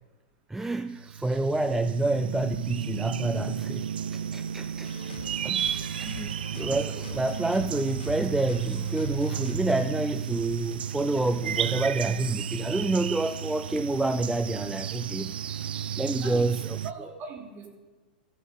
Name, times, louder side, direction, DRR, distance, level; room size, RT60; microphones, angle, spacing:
voice 1, 0.5-4.9 5.4-15.3 15.6-15.7 16.0-16.8, right 2 dB, 5° right, 11 dB, 0.4 m, -28 dB
sound 1, 0.9-16.9, right 8 dB, 85° right, 0.3 m, -33 dB
sound 2, 4.8-9.9, left 4 dB, 85° left, 1.7 m, -44 dB
voice 2, 16.2-16.6 16.8-17.7, right 4 dB, 35° right, 1 dB, 3.0 m, -41 dB
14.5 x 7.4 x 5.5 m, 1.2 s
hypercardioid pair, 115°, 5 cm